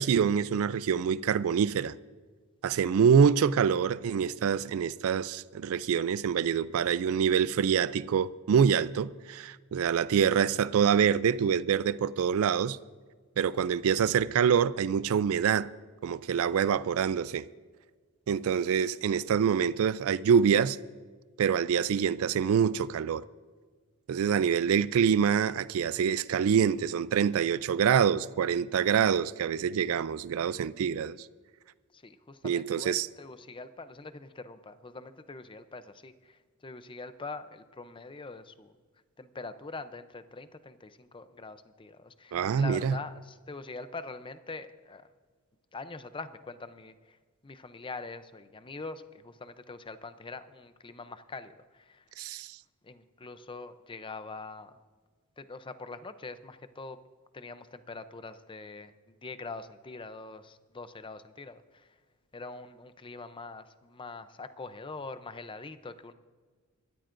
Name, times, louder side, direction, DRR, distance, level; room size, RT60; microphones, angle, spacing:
voice 1, 0.0-2.0 2.6-12.8 13.4-15.7 16.0-17.5 18.3-20.8 21.4-23.2 24.1-31.2 32.4-33.1 42.3-43.0 52.2-52.6, right 7 dB, 65° right, 0.3 m, -26 dB
voice 2, 31.9-38.7 39.2-45.1 45.7-47.2 47.4-52.0 52.8-54.8 55.4-57.0 57.3-62.0 62.3-66.1, left 3 dB, 25° left, 0.6 m, -44 dB
23.5 x 13.5 x 2.6 m
head